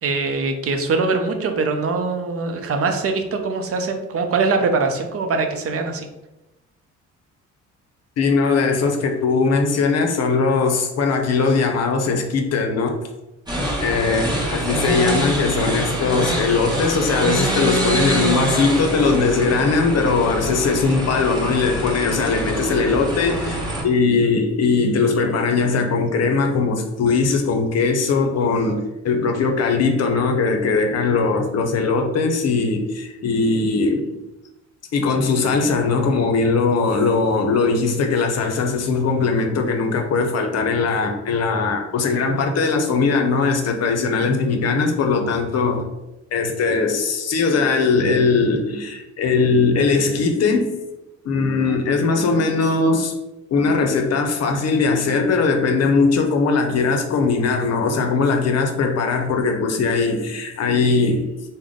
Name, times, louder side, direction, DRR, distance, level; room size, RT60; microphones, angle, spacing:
voice 1, 0.0-6.1, right 4 dB, 50° right, 5 dB, 0.5 m, -22 dB
voice 2, 8.2-13.0 13.8-34.1 34.9-45.9 46.3-50.7 51.2-53.1 53.5-61.3, left 4 dB, 55° left, 4 dB, 0.6 m, -20 dB
sound 1, 13.5-23.8, equal, 15° right, 1.0 m, -25 dB
3.5 x 2.1 x 3.6 m, 0.97 s
cardioid pair, 90°, 30 cm